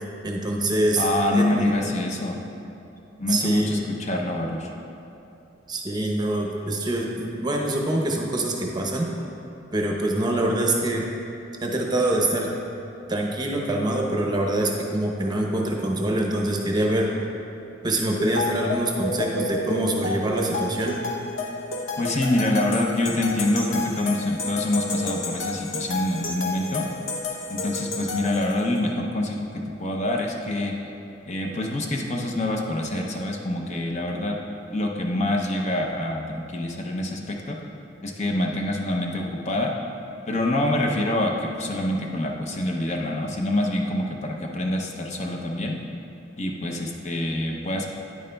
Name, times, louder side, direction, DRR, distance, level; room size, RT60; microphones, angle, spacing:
voice 1, 0.2-1.1 1.3-1.7 3.3-3.8 5.7-9.1 9.7-11.1 11.6-12.5 13.1-17.1 17.8-21.0, right 1 dB, 20° right, 0 dB, 0.7 m, -25 dB
voice 2, 1.0-2.4 3.2-4.7 22.0-26.9 27.5-29.5 29.8-30.7 31.3-34.4 34.7-37.6 38.0-39.7 40.3-45.8 46.3-47.9, left 1 dB, 35° left, 0 dB, 0.6 m, -26 dB
sound 1, 18.2-28.8, left 2 dB, 90° left, 0.8 m, -31 dB
9.7 x 9.0 x 2.2 m, 2.9 s
head